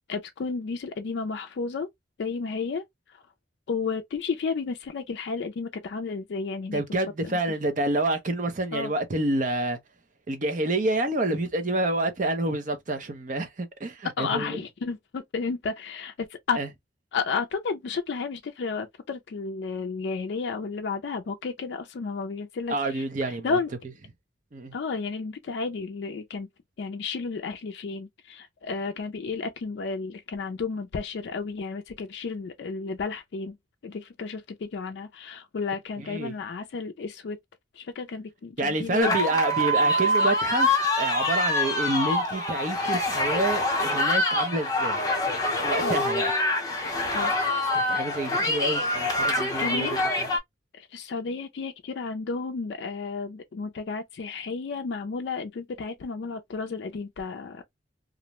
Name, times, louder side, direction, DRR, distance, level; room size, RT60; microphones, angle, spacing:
voice 1, 0.1-1.9 2.2-2.8 3.1-3.2 3.7-6.8 7.2-7.4 8.7-8.9 14.2-16.6 17.1-23.7 24.7-26.5 26.8-33.6 33.8-37.4 37.8-39.2 45.8-46.0 47.1-47.3 49.6-50.0 50.7-57.6, left 4 dB, 60° left, 0.3 m, -32 dB
voice 2, 6.7-9.8 10.3-14.6 16.6-16.7 22.7-23.6 24.5-24.7 36.0-36.4 38.6-45.0 45.6-46.3 47.7-49.9 50.2-50.3, right 2 dB, 40° right, 0.5 m, -28 dB
sound 1, 39.0-50.4, left 1 dB, 20° left, 0.6 m, -25 dB
2.5 x 2.1 x 2.8 m
head